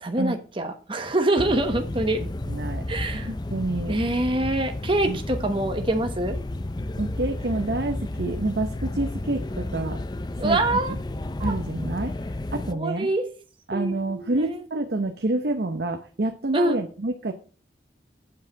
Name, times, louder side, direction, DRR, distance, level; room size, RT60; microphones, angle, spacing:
voice 1, 0.0-2.2 2.9-3.3 3.9-6.3 10.4-10.9 11.4-11.6 12.7-13.2 13.7-14.6 16.5-16.8, right 1 dB, 30° right, 5 dB, 1.0 m, -25 dB
sound 1, 1.4-12.7, left 1 dB, 25° left, 0.5 m, -32 dB
voice 2, 2.2-2.8 3.1-4.0 5.1-5.2 7.0-10.0 10.4-10.6 10.9-11.0 11.4-12.1 12.5-13.1 13.7-17.3, right 2 dB, 65° right, 6 dB, 0.8 m, -28 dB
8.4 x 4.9 x 7.2 m, 0.39 s
head